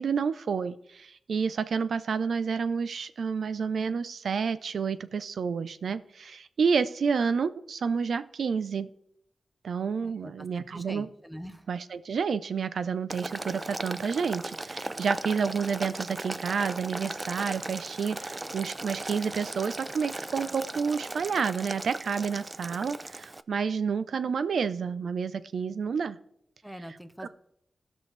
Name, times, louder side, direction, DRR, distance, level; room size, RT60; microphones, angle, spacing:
voice 1, 0.0-8.9 9.6-11.1 11.7-26.2 27.2-27.3, right 6 dB, 90° right, 14 dB, 0.5 m, -29 dB
voice 2, 10.0-11.7 26.6-27.3, equal, 5° right, 10 dB, 0.9 m, -44 dB
Boiling, 13.1-23.4, right 2 dB, 30° right, 0.4 m, -37 dB
17.0 x 6.2 x 3.3 m, 0.72 s
cardioid pair, 70°, 0 cm